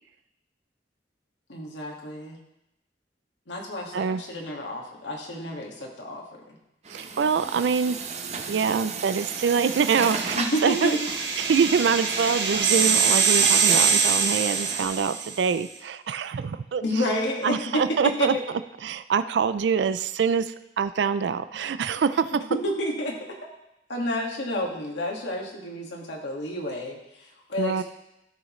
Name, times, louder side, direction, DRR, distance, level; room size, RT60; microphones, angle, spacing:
voice 1, 1.5-2.4 3.5-6.2 10.4-11.0 16.8-18.4 22.5-23.4 23.9-27.8, left 1 dB, 80° left, -1 dB, 1.9 m, -30 dB
Truck, 6.8-14.8, right 4 dB, 40° right, 0.8 m, -35 dB
voice 2, 6.9-8.0 8.5-11.0 11.4-16.8 17.4-18.3 18.8-22.3 27.6-27.8, right 6 dB, 70° right, 13 dB, 0.4 m, -25 dB
sound 1, 9.5-15.4, right 6 dB, 90° right, 1.3 m, -24 dB
14.0 x 6.3 x 3.1 m, 0.88 s
head